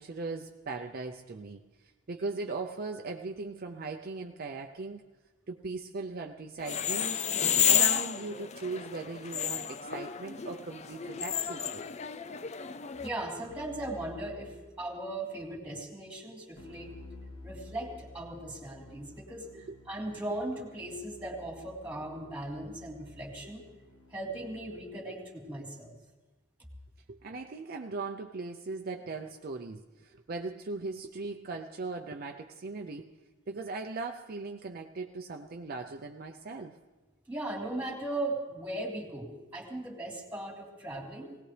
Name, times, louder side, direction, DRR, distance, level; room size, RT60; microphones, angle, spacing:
voice 1, 0.0-1.6 2.1-5.0 5.5-7.2 7.7-11.8 19.5-19.8 27.1-33.1 33.5-36.7, right 3 dB, 45° right, 4 dB, 0.5 m, -39 dB
sound 1, 6.6-13.1, left 9 dB, 35° left, 0.4 m, -31 dB
voice 2, 13.0-16.9 17.4-23.6 24.1-25.9 37.3-41.4, right 1 dB, 10° right, 0 dB, 2.5 m, -38 dB
Keyboard (musical), 13.5-15.2 16.6-24.9, left 2 dB, 85° left, 1.6 m, -52 dB
20.5 x 17.5 x 3.3 m, 1.2 s
head